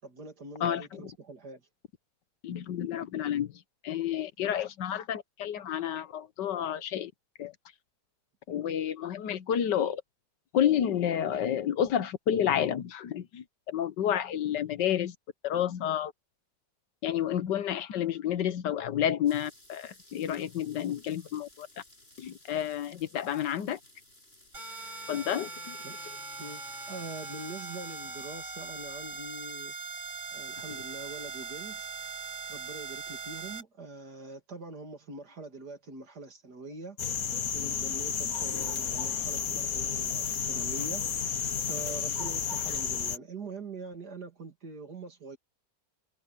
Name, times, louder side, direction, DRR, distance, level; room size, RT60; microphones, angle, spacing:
voice 1, 0.0-1.7 25.8-25.9 26.4-29.7 30.3-31.9 32.5-37.0 37.5-41.0 41.6-45.4, right 3 dB, 65° right, 3.4 m, -43 dB
voice 2, 0.6-1.0 2.4-3.5 3.8-7.1 7.4-7.5 8.5-10.0 10.5-15.1 15.4-16.1 17.0-21.7 22.2-23.8 25.1-25.8, left 10 dB, 80° left, 1.6 m, -30 dB
sound 1, 19.3-28.3, left 1 dB, 35° left, 7.8 m, -58 dB
sound 2, 24.5-33.6, right 4 dB, 25° right, 2.0 m, -40 dB
sound 3, 37.0-43.2, left 7 dB, 60° left, 1.7 m, -32 dB
omnidirectional pair, 1.9 m